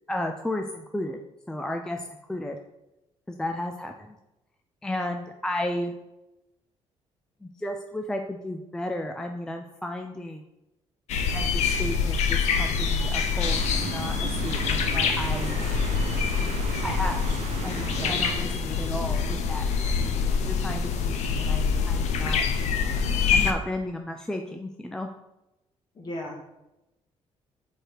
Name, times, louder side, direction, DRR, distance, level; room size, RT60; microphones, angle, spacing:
voice 1, 0.1-1.2 1.5-2.6 3.3-4.2 4.8-6.0 7.4-10.4 11.3-15.7 16.8-17.2 17.6-19.6 20.4-22.4 23.3-25.1, left 1 dB, 5° left, 4 dB, 0.4 m, -33 dB
sound 1, 11.1-23.5, left 5 dB, 80° left, 0.6 m, -25 dB
sound 2, 13.4-18.4, right 8 dB, 75° right, 0.5 m, -36 dB
voice 2, 26.0-26.4, left 1 dB, 40° left, -1 dB, 1.8 m, -36 dB
4.6 x 4.5 x 4.9 m, 0.94 s
cardioid pair, 120°, 12 cm